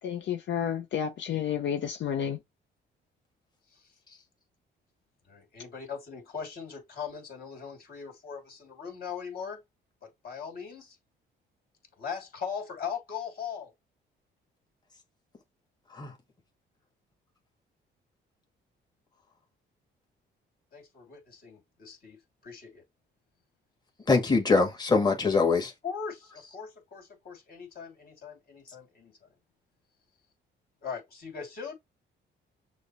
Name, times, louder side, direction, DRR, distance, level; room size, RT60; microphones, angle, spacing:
voice 1, 0.0-2.4, left 9 dB, 65° left, 0.7 m, -31 dB
voice 2, 5.2-9.6 10.0-11.0 11.9-13.7 20.7-22.8 25.8-29.3 30.8-31.7, left 6 dB, 50° left, 2.7 m, -40 dB
voice 3, 24.1-25.7, left 4 dB, 20° left, 1.6 m, -23 dB
6.3 x 2.2 x 3.0 m
cardioid pair, 90°, 20 cm